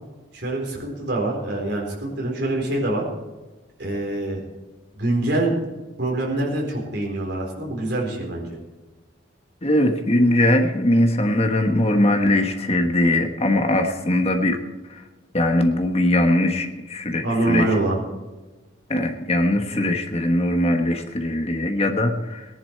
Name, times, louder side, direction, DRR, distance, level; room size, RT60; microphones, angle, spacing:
voice 1, 0.3-3.0 3.8-4.4 4.9-5.6 6.0-8.6 17.2-18.0, right 2 dB, 55° right, -1 dB, 4.0 m, -25 dB
voice 2, 9.6-14.6 15.3-17.7 18.9-22.5, left 1 dB, 30° left, 5 dB, 1.3 m, -20 dB
18.5 x 10.5 x 4.5 m, 1.2 s
head